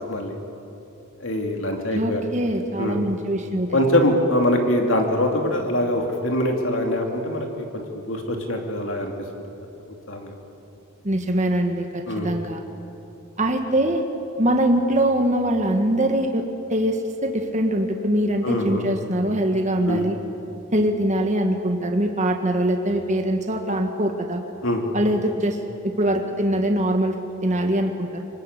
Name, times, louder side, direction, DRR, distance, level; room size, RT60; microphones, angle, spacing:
voice 1, 1.2-2.2 2.8-3.0 3.7-9.1 9.9-10.3 12.1-12.3 18.4-18.8 19.9-20.1 24.6-24.8, left 1 dB, 65° left, 2 dB, 2.9 m, -23 dB
voice 2, 1.9-3.8 11.0-12.6 13.4-14.0 14.4-20.2 20.7-24.4 24.9-25.6 25.8-27.1 27.4-28.2, right 1 dB, 35° right, 4 dB, 1.5 m, -23 dB
25.0 x 19.5 x 8.2 m, 2.8 s
head